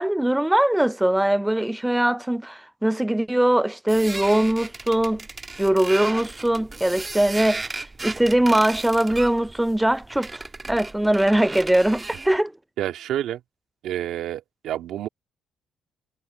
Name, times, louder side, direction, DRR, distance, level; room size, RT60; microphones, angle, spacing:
voice 1, 0.0-5.2 5.6-7.6 8.0-10.4 10.7-12.5, right 1 dB, 5° right, 0.4 m, -21 dB
sound 1, 3.9-12.4, right 3 dB, 25° right, 1.4 m, -35 dB
voice 2, 12.8-13.4 13.8-15.1, right 12 dB, 80° right, 2.3 m, -28 dB
cardioid pair, 90°, 0 cm